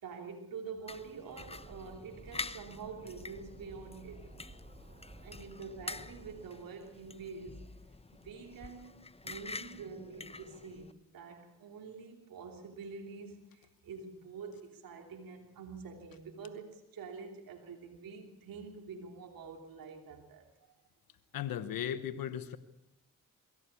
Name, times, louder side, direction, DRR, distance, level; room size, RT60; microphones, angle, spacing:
voice 1, 0.0-4.4 5.2-7.8 8.1-20.5, right 5 dB, 85° right, 2 dB, 3.2 m, -47 dB
sound 1, 0.9-10.9, left 3 dB, 15° left, 1.0 m, -47 dB
sound 2, 1.4-6.5, right 2 dB, 25° right, 3.6 m, -54 dB
voice 2, 21.3-22.6, left 10 dB, 90° left, 12 dB, 1.1 m, -36 dB
22.5 x 16.5 x 8.4 m, 0.88 s
cardioid pair, 50°, 34 cm